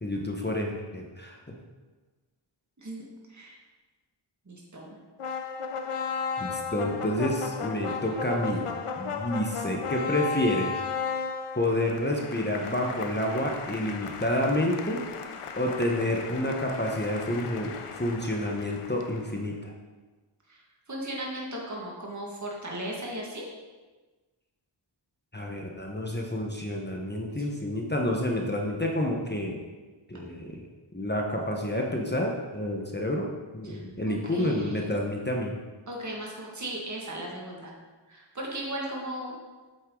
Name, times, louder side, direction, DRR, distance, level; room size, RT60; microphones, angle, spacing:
voice 1, 0.0-1.4 6.4-8.7 9.0-10.8 11.5-15.0 15.6-17.7 18.0-19.7 25.3-29.6 30.1-30.6 30.9-33.3 33.5-35.6, left 1 dB, 20° left, 0 dB, 1.2 m, -29 dB
voice 2, 4.5-5.0 20.5-23.4 33.6-34.9 35.9-37.7 38.1-39.4, right 1 dB, 35° right, -3 dB, 2.0 m, -37 dB
sound 1, 5.2-19.4, left 5 dB, 85° left, 0.8 m, -35 dB
8.4 x 8.0 x 3.9 m, 1.3 s
wide cardioid pair, 60°, 50 cm